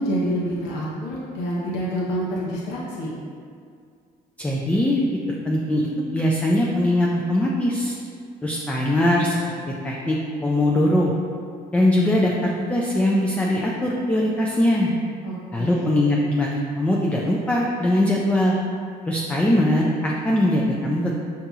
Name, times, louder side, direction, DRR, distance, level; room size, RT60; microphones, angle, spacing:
voice 1, 0.0-3.1 15.2-15.9, equal, 90° left, -6 dB, 0.8 m, -27 dB
voice 2, 4.4-5.0 5.4-5.9 6.1-7.9 8.4-9.4 9.8-11.1 11.7-14.9 15.5-18.6 19.1-21.1, left 1 dB, 10° left, -3 dB, 0.3 m, -21 dB
5.3 x 2.8 x 2.4 m, 2.2 s
cardioid pair, 110°, 17 cm